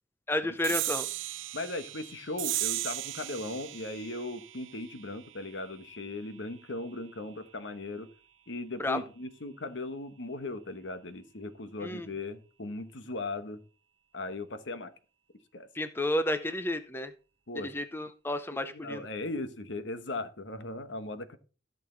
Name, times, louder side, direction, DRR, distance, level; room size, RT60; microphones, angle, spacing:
voice 1, 0.3-1.1 8.8-9.0 11.8-12.1 15.7-17.1 17.5-19.1, left 1 dB, 10° left, 10 dB, 0.6 m, -31 dB
sound 1, 0.6-7.5, right 16 dB, 85° right, 0.6 m, -37 dB
voice 2, 1.5-8.1 8.5-13.6 14.1-14.9 15.5-15.7 17.5-17.7 18.7-21.4, left 2 dB, 70° left, 10 dB, 1.1 m, -38 dB
14.0 x 6.6 x 3.9 m, 0.36 s
head